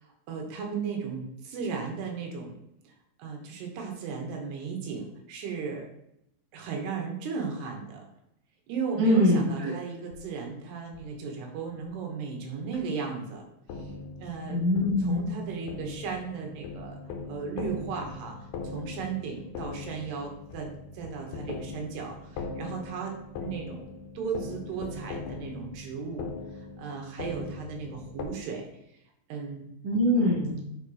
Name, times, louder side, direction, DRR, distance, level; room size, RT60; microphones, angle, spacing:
voice 1, 0.0-2.6 2.8-2.9 3.2-5.9 6.5-8.0 8.7-13.4 13.7-13.9 14.2-14.6 15.0-17.0 17.3-18.4 18.6-26.3 26.8-28.7 29.3-29.7, right 5 dB, 80° right, 1 dB, 3.3 m, -36 dB
voice 2, 9.0-9.7 14.5-15.4 29.8-30.6, left 1 dB, 55° right, -4 dB, 1.2 m, -23 dB
sound 1, 10.1-10.3 10.9-11.0 11.8-11.9 12.7-12.9 13.7-28.3, left 3 dB, 75° left, 2.7 m, -40 dB
10.0 x 4.8 x 3.1 m, 0.82 s
omnidirectional pair, 4.8 m